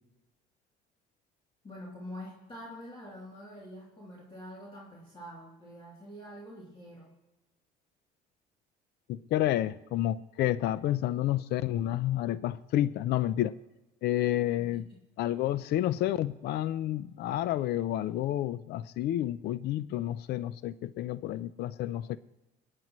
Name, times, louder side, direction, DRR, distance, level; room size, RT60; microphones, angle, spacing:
voice 1, 1.6-7.1 14.6-15.0, equal, 30° left, -4 dB, 2.8 m, -46 dB
voice 2, 9.1-13.5 14.0-14.8 15.2-22.2, left 13 dB, 65° left, 16 dB, 0.4 m, -30 dB
27.0 x 9.5 x 3.0 m, 1.0 s
cardioid pair, 110°, 18 cm